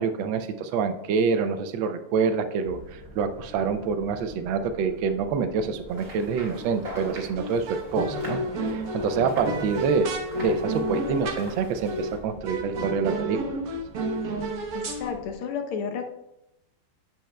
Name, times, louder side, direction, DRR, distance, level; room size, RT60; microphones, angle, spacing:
voice 1, 0.0-10.1 10.4-13.6, right 5 dB, 70° right, 9 dB, 1.3 m, -26 dB
sound 1, 2.6-15.3, left 1 dB, 55° left, 0.4 m, -47 dB
sound 2, 5.9-12.2, right 1 dB, 40° right, 2.4 m, -43 dB
sound 3, 6.5-6.9 7.4-11.5 11.9-12.2 12.4-15.1, right 1 dB, 55° right, 1.0 m, -31 dB
voice 2, 14.7-16.1, left 6 dB, 75° left, 5 dB, 1.6 m, -32 dB
10.0 x 7.7 x 2.2 m, 0.90 s
omnidirectional pair, 2.4 m